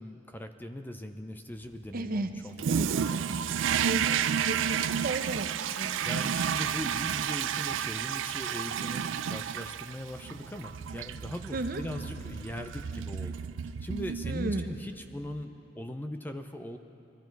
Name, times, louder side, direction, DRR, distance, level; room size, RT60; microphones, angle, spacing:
voice 1, 0.0-3.2 6.0-13.4 13.6-16.8, left 1 dB, 10° left, 7 dB, 0.5 m, -40 dB
voice 2, 1.9-2.3 2.8-3.4 3.8-6.3 11.5-11.8 14.2-14.7, right 2 dB, 50° right, 8 dB, 0.7 m, -35 dB
Toilet flush, 2.6-14.9, right 8 dB, 85° right, 0.4 m, -31 dB
20.5 x 12.5 x 4.6 m, 2.6 s
head